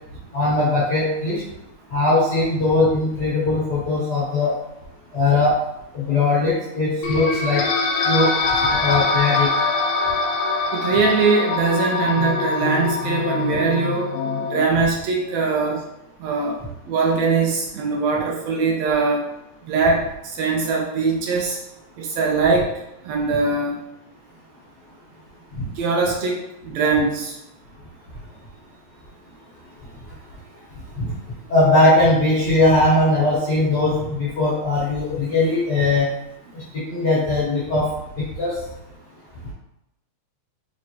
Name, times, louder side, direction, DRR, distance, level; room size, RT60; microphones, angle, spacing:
voice 1, 0.3-1.4 1.9-4.5 5.1-5.6 5.9-7.7 8.0-8.3 8.6-9.5 25.6-25.7 30.1-30.2 30.9-31.2 31.5-36.1 36.5-37.9 38.2-38.6, left 2 dB, 55° left, -9 dB, 1.2 m, -20 dB
sound 1, 7.0-14.7, left 4 dB, 85° left, 1.9 m, -23 dB
voice 2, 10.7-14.1 14.5-15.8 16.2-16.6 16.9-19.3 19.7-20.1 20.4-21.6 22.0-22.7 23.1-23.8 25.7-26.4 26.6-27.3, right 4 dB, 75° right, 0 dB, 1.8 m, -21 dB
5.0 x 3.0 x 2.8 m, 0.86 s
omnidirectional pair, 3.4 m